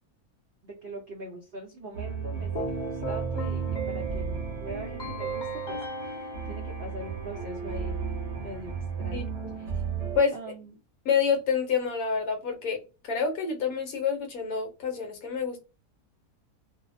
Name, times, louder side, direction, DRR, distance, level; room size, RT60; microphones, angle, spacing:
voice 1, 0.6-8.0 8.4-8.7 9.0-9.9 10.3-10.8, right 1 dB, 70° right, 1 dB, 0.5 m, -42 dB
sound 1, 1.9-10.2, right 5 dB, 55° right, 0.9 m, -34 dB
Keyboard (musical), 2.6-7.5, right 3 dB, 50° left, 0.5 m, -36 dB
voice 2, 9.1-9.5 10.1-10.3 11.0-12.8 13.0-15.6, left 6 dB, 70° left, 4 dB, 1.1 m, -27 dB
2.6 x 2.0 x 2.5 m, 0.29 s
omnidirectional pair, 1.7 m